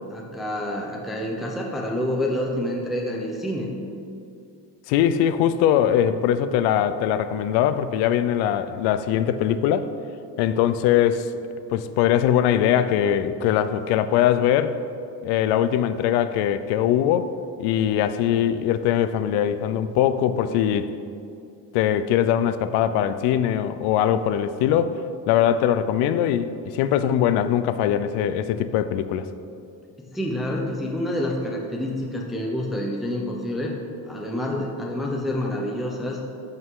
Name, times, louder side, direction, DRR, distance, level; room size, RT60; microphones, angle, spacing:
voice 1, 0.1-3.7 30.0-33.8 34.0-36.2, left 1 dB, ahead, -2 dB, 0.6 m, -28 dB
voice 2, 4.9-9.9 10.4-11.3 11.7-14.8 15.2-17.3 17.6-20.9 21.7-25.0 25.3-29.3, left 10 dB, 90° left, 12 dB, 0.6 m, -21 dB
14.0 x 5.6 x 3.7 m, 2.5 s
cardioid pair, 160°, 38 cm